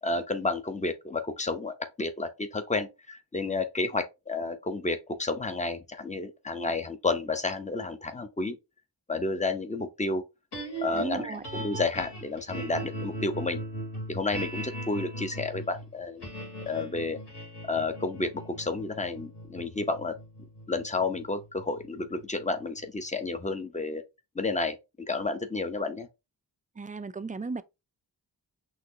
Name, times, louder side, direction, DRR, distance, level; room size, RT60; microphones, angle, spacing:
voice 1, 0.0-8.6 9.1-10.2 10.8-13.6 14.1-16.3 16.6-17.2 17.6-20.2 20.7-24.0 24.3-26.1, left 3 dB, 15° left, 0.8 m, -31 dB
sound 1, 10.5-22.8, right 1 dB, 70° left, 3.0 m, -39 dB
voice 2, 10.9-11.4 26.8-27.6, right 3 dB, 20° right, 0.4 m, -35 dB
5.8 x 3.2 x 2.7 m
wide cardioid pair, 100°, 41 cm